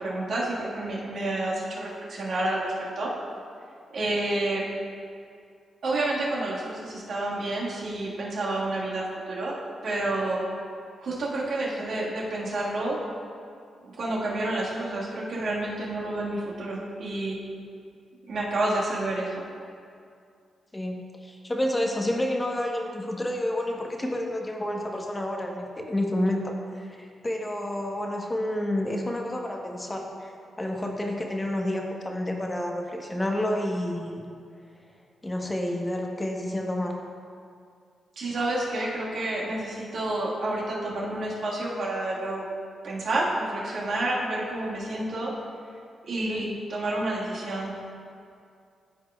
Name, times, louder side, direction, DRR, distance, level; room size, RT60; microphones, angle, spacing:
voice 1, 0.0-3.1 3.9-4.7 5.8-9.6 9.8-10.4 11.0-13.1 13.8-17.4 18.3-19.4 38.2-42.5 42.8-45.3 46.0-47.8, right 2 dB, 65° right, -5 dB, 1.7 m, -29 dB
voice 2, 20.7-30.3 30.6-34.2 35.2-37.0 46.2-46.4, left 1 dB, 25° left, 1 dB, 1.1 m, -29 dB
12.5 x 4.9 x 2.4 m, 2.3 s
supercardioid pair, 50°, 0 cm